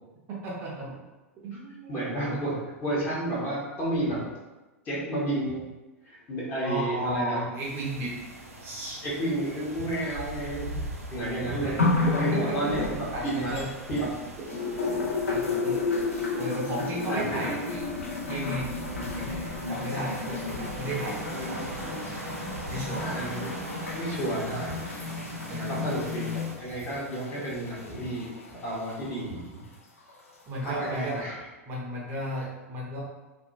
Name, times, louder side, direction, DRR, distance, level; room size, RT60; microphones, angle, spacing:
voice 1, 0.3-0.9 1.4-2.4 6.6-8.2 8.6-9.0 11.6-12.8 13.1-13.7 14.5-15.8 16.4-17.9 18.2-21.7 22.7-23.2 25.5-25.9 30.5-31.3 31.7-33.0, right 1 dB, 30° right, -4 dB, 0.5 m, -34 dB
voice 2, 1.9-2.6 2.8-4.2 4.8-5.6 6.0-7.4 9.0-10.8 11.1-11.8 12.2-13.6 13.9-14.1 16.3-16.5 16.9-17.4 21.0-22.0 23.0-24.8 25.7-26.3 26.6-29.4 30.6-31.3, right 1 dB, 25° left, -7 dB, 1.1 m, -31 dB
sound 1, 7.6-26.6, right 1 dB, 85° right, 0.4 m, -41 dB
sound 2, 11.8-14.1 14.5-29.2 30.1-30.2, left 4 dB, 70° left, 0.4 m, -32 dB
2.6 x 2.1 x 2.6 m, 1.1 s
figure-of-eight pair, 90°, 8 cm